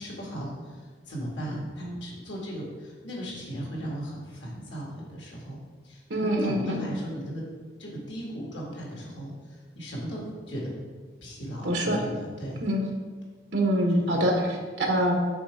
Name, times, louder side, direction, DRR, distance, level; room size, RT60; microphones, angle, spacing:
voice 1, 0.0-5.6 5.8-7.4 7.8-10.7 11.2-12.7 14.1-14.4, equal, 85° left, -3 dB, 1.8 m, -37 dB
voice 2, 6.1-6.8 11.6-12.0 12.6-12.8 13.5-15.1, equal, 70° right, 1 dB, 1.2 m, -25 dB
6.1 x 4.2 x 4.7 m, 1.4 s
head